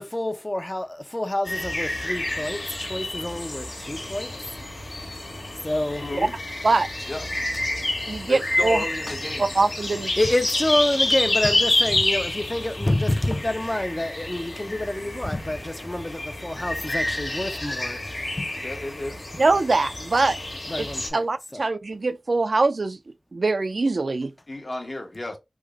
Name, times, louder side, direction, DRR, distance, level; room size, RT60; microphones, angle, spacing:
voice 1, 0.0-4.3 5.6-6.1 9.1-9.2 10.2-18.0 18.4-18.5 20.7-21.3 21.5-21.6, left 1 dB, 25° left, 0.4 m, -27 dB
sound 1, 1.4-21.1, left 1 dB, 75° left, 1.2 m, -29 dB
voice 2, 6.0-6.3 7.1-7.3 8.3-9.5 18.6-19.2 24.5-25.3, left 2 dB, 45° left, 0.8 m, -33 dB
voice 3, 8.1-8.8 9.4-10.1 19.4-20.4 20.8-20.9 21.1-23.0 23.3-24.3, right 3 dB, 75° right, 0.3 m, -23 dB
3.3 x 2.0 x 3.4 m
wide cardioid pair, 65°, 0 cm